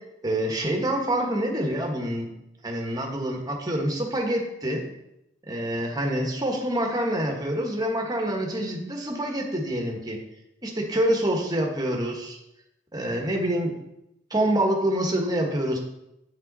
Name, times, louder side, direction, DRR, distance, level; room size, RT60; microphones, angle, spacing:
voice 1, 0.2-2.3 2.6-4.8 5.5-10.2 10.6-12.4 12.9-13.7 14.3-15.8, right 1 dB, 20° right, 1 dB, 1.4 m, -26 dB
9.3 x 5.5 x 4.1 m, 0.85 s
head